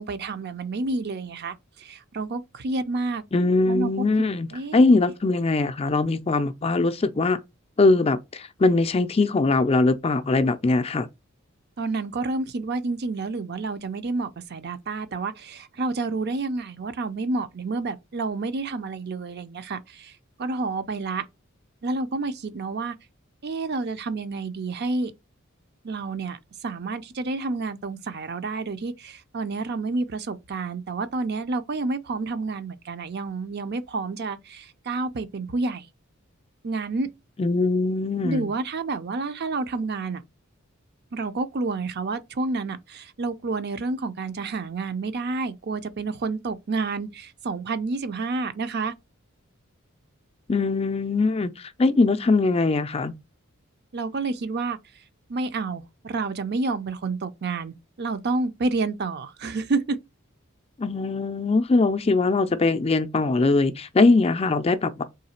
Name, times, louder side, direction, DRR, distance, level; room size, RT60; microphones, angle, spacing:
voice 1, 0.0-3.2 3.7-4.8 11.8-20.1 20.4-21.3 21.8-22.9 23.4-25.1 25.8-35.9 36.6-37.1 38.2-40.2 41.1-48.9 53.9-54.8 55.3-60.0, right 3 dB, 50° right, 0.5 m, -29 dB
voice 2, 3.3-7.4 7.8-11.1 37.4-38.5 50.5-53.1 60.8-65.0, left 3 dB, 30° left, 0.4 m, -21 dB
3.8 x 3.2 x 4.3 m
head